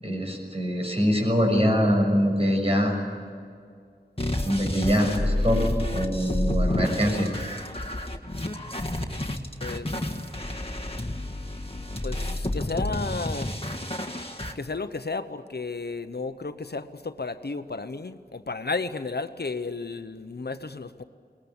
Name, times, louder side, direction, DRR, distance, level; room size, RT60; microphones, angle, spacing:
voice 1, 0.0-3.0 4.4-5.6 5.9-7.3, equal, 35° right, 1 dB, 6.6 m, -23 dB
sound 1, 4.2-14.5, left 1 dB, 35° left, 1.8 m, -30 dB
voice 2, 9.6-10.2 12.0-13.6 14.5-21.0, left 3 dB, 75° left, 10 dB, 0.9 m, -33 dB
23.0 x 20.0 x 9.8 m, 2.2 s
wide cardioid pair, 45°, 17 cm